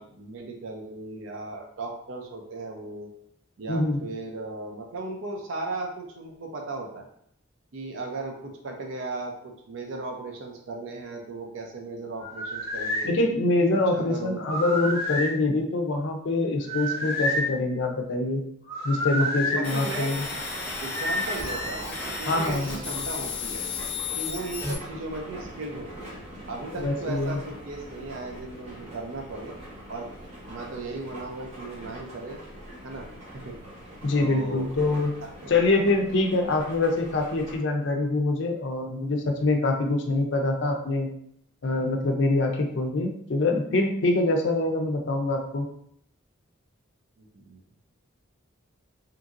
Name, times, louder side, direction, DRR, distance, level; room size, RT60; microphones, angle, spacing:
voice 1, 0.0-3.1 3.6-7.1 7.7-13.2 13.7-14.4 19.2-20.1 20.8-23.7 24.1-26.1 26.5-29.5 29.9-30.1 30.4-32.4 32.8-33.1 33.3-33.5 34.2-34.7 35.4-35.8 47.2-47.6, right 3 dB, 65° right, 2 dB, 0.5 m, -36 dB
voice 2, 3.7-4.0 13.0-18.4 18.8-20.2 22.3-22.9 26.7-27.4 34.0-35.1 35.5-41.1 41.6-45.6, left 2 dB, 60° left, 3 dB, 0.4 m, -25 dB
sound 1, 12.2-13.1 14.4-15.3 16.6-17.5 18.7-19.6 20.9-21.8, left 1 dB, 80° right, 1.4 m, -29 dB
sound 2, 19.6-24.7, left 4 dB, 5° left, 0.5 m, -33 dB
sound 3, 20.1-37.6, equal, 30° right, 0.8 m, -43 dB
2.8 x 2.6 x 2.4 m, 0.69 s
head